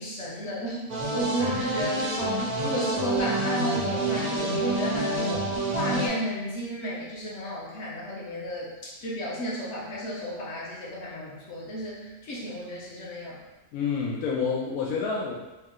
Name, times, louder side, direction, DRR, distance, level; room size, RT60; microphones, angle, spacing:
voice 1, 0.0-5.4 5.7-13.4, equal, 55° left, -5 dB, 1.2 m, -32 dB
sound 1, 0.9-6.1, right 2 dB, 50° right, 0.5 m, -28 dB
voice 2, 13.7-15.3, left 5 dB, 85° left, -3 dB, 1.0 m, -28 dB
3.3 x 2.9 x 3.6 m, 1.1 s
omnidirectional pair, 1.5 m